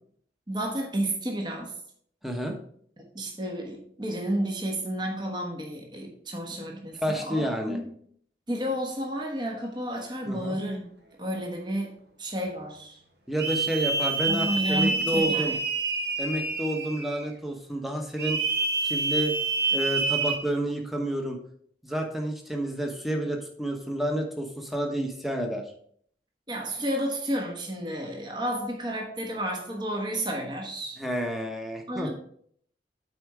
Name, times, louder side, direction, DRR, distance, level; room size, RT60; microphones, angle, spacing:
voice 1, 0.5-1.7 3.0-7.9 8.5-10.8 11.2-13.0 14.3-15.6 26.5-31.0 31.9-32.1, right 1 dB, 25° right, 1 dB, 1.2 m, -31 dB
voice 2, 2.2-2.6 7.0-7.8 10.3-10.6 13.3-15.5 16.2-18.4 18.8-19.3 19.7-21.4 21.8-25.6 31.0-32.1, right 1 dB, ahead, 3 dB, 1.0 m, -30 dB
sound 1, 13.4-17.3 18.2-20.4, right 3 dB, 60° right, 1.2 m, -27 dB
8.6 x 4.3 x 4.7 m, 0.63 s
head